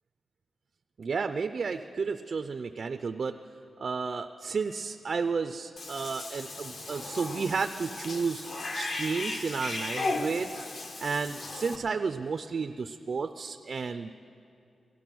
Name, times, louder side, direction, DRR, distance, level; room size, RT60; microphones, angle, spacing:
voice 1, 1.0-3.4 3.8-10.5 11.0-14.1, right 5 dB, 45° right, 8 dB, 0.4 m, -32 dB
Cat / Bathtub (filling or washing), 5.8-11.8, left 3 dB, 50° left, 1.0 m, -36 dB
17.0 x 13.0 x 6.1 m, 2.5 s
wide cardioid pair, 175°, 0 cm